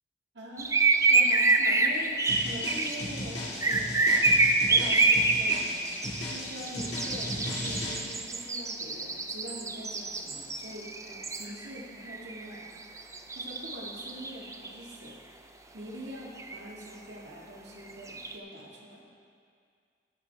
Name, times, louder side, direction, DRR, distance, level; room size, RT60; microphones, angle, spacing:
voice 1, 0.3-0.8 1.1-4.3 4.7-5.7 6.2-12.7 13.3-15.2 15.7-19.0, equal, 70° right, -3 dB, 2.2 m, -43 dB
sound 1, 0.6-3.0 3.6-11.8 12.1-12.7 13.0-14.7 16.4-16.6 17.9-18.3, right 3 dB, 15° right, 0.6 m, -26 dB
sound 2, 2.3-8.0, left 1 dB, 65° left, 2.6 m, -36 dB
17.5 x 9.0 x 3.5 m, 2.2 s
head